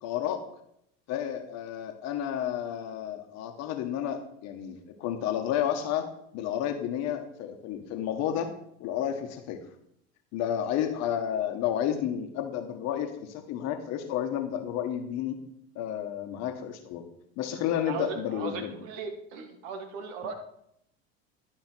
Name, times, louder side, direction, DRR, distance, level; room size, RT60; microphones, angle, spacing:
voice 1, 0.0-0.4 1.1-6.1 6.3-8.5 8.8-9.6 10.3-15.4 15.7-17.0 17.4-18.7, left 10 dB, 55° left, 6 dB, 1.4 m, -31 dB
voice 2, 17.8-20.3, right 5 dB, 65° right, 6 dB, 1.6 m, -37 dB
12.0 x 5.5 x 4.5 m, 0.74 s
hypercardioid pair, 80°, 31 cm